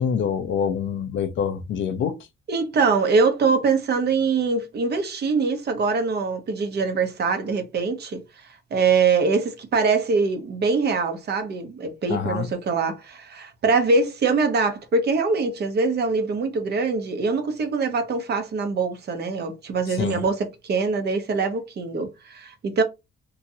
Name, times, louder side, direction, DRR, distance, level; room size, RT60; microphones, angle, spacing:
voice 1, 0.0-2.2 12.1-12.5 20.0-20.2, left 7 dB, 70° left, 0.6 m, -25 dB
voice 2, 2.5-8.2 8.7-22.8, right 4 dB, 55° right, 0.9 m, -23 dB
3.0 x 2.6 x 2.7 m
cardioid pair, 90°, 20 cm